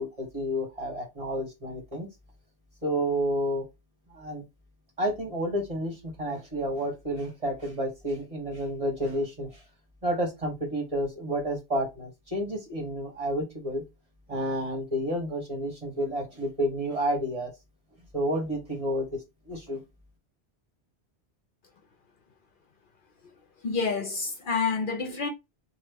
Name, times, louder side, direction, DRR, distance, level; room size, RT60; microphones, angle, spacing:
voice 1, 0.0-2.1 2.8-3.6 4.1-4.4 5.0-9.6 10.0-13.8 14.3-17.5 18.1-19.2 19.5-19.8, equal, 35° right, 1.4 m, -30 dB
voice 2, 23.6-25.3, left 5 dB, 60° left, 0.7 m, -28 dB
3.0 x 2.3 x 3.4 m
omnidirectional pair, 1.1 m